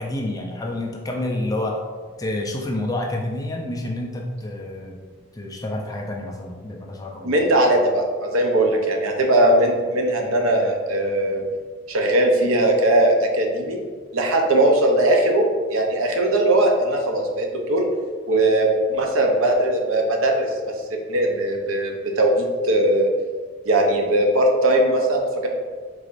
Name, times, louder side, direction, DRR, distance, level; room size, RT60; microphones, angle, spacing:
voice 1, 0.0-1.8 2.2-5.0 5.3-7.3, left 1 dB, 15° left, -1 dB, 0.5 m, -28 dB
voice 2, 7.2-11.5 11.9-13.8 14.1-15.5 15.7-17.9 18.3-20.5 20.9-23.1 23.7-25.5, right 1 dB, 85° right, 2 dB, 0.7 m, -19 dB
4.8 x 3.9 x 2.5 m, 1.5 s
head